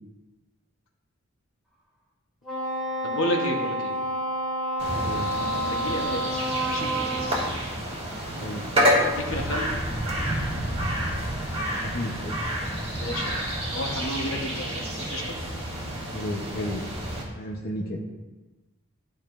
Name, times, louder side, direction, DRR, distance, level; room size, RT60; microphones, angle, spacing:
Wind instrument woodwind instrument, 2.4-7.5, right 1 dB, ahead, 2.3 m, -29 dB
voice 1, 3.0-3.9 5.7-6.3 6.7-6.9 9.1-9.7 12.9-15.3, left 1 dB, 70° left, 1 dB, 1.2 m, -31 dB
sound 1, 4.8-17.2, equal, 30° right, 2.6 m, -29 dB
voice 2, 5.0-5.3 8.4-8.7 11.6-12.4 16.1-16.9 17.3-18.0, left 1 dB, 50° left, -2 dB, 0.9 m, -33 dB
12.5 x 5.2 x 2.6 m, 1.2 s
head